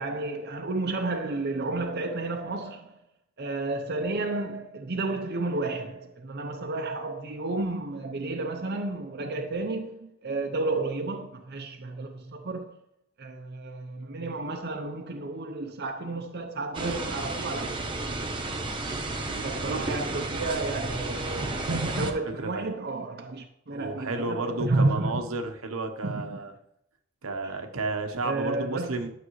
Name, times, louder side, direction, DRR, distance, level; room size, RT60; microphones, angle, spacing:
voice 1, 0.0-3.0 3.4-12.7 13.2-18.4 19.4-25.2 26.0-26.4 28.2-29.1, right 2 dB, 50° right, 0.7 m, -31 dB
sound 1, 16.7-22.1, right 2 dB, 25° right, 0.9 m, -32 dB
voice 2, 19.3-19.8 22.4-22.7 23.7-26.5 27.2-29.1, right 3 dB, 75° right, 1.0 m, -32 dB
11.5 x 6.8 x 3.1 m
head